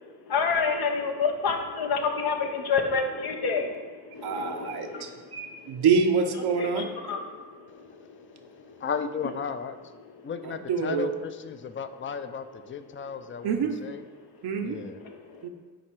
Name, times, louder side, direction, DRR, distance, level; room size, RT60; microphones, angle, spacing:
voice 1, 0.3-5.2 6.6-8.4 8.7-8.8 10.2-10.3 15.0-15.5, left 5 dB, 75° left, 4 dB, 0.9 m, -29 dB
voice 2, 4.2-6.9 10.4-11.1 13.4-13.8 14.4-14.8 15.4-15.5, right 5 dB, 80° right, 3 dB, 0.7 m, -26 dB
voice 3, 8.8-9.9 10.2-14.0 14.6-15.0, left 6 dB, 30° left, 10 dB, 0.5 m, -35 dB
8.9 x 3.3 x 4.5 m, 1.4 s
cardioid pair, 65°, 38 cm